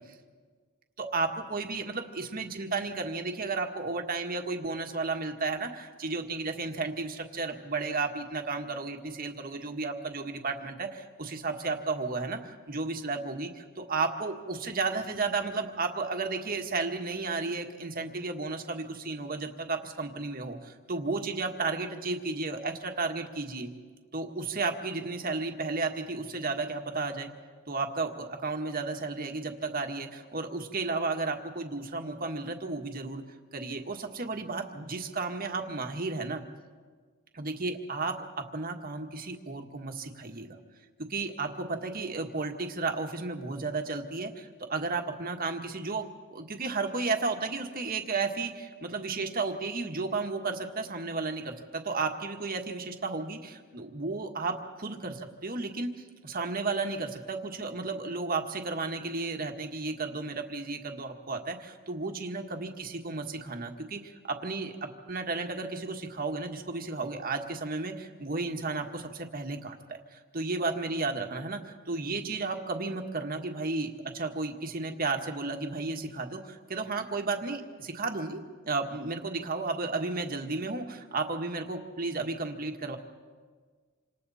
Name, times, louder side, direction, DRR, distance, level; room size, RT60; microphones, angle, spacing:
voice 1, 1.0-23.7 24.1-27.3 27.7-33.2 33.5-36.4 37.3-40.6 41.1-55.9 56.2-64.7 65.1-83.0, right 3 dB, 45° right, 4 dB, 1.7 m, -33 dB
27.5 x 26.5 x 4.3 m, 1.5 s
head